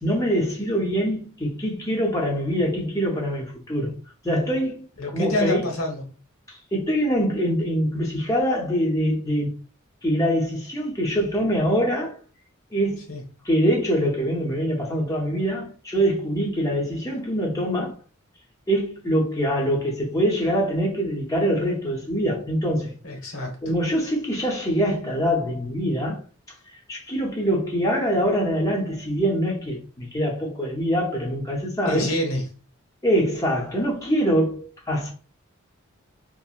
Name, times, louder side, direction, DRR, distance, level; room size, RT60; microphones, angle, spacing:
voice 1, 0.0-3.9 4.2-4.9 5.1-5.6 6.5-9.5 10.0-12.2 12.7-13.1 13.4-18.0 18.7-22.9 23.6-26.2 26.9-32.1 33.0-35.1, equal, 15° left, 0.7 m, -24 dB
voice 2, 5.0-6.0 13.1-13.2 23.0-23.6 31.9-32.5, left 1 dB, 75° left, 0.9 m, -26 dB
2.8 x 2.5 x 2.3 m
head